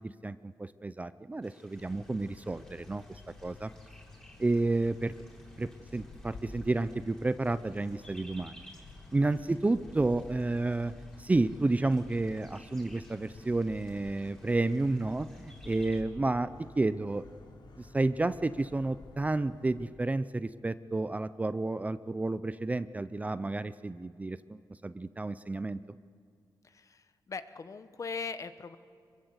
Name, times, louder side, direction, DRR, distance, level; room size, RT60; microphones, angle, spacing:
voice 1, 0.0-3.7 4.4-5.1 5.6-8.6 9.1-10.9 11.2-17.2 17.8-25.8, right 2 dB, 20° right, 14 dB, 0.5 m, -31 dB
sound 1, 1.4-16.0, equal, 10° left, 4.3 m, -58 dB
sound 2, 1.8-19.9, left 3 dB, 75° left, 3.3 m, -51 dB
voice 2, 26.6-28.8, left 5 dB, 45° left, 11 dB, 1.1 m, -40 dB
25.0 x 22.5 x 8.1 m, 2.2 s
wide cardioid pair, 135°, 8 cm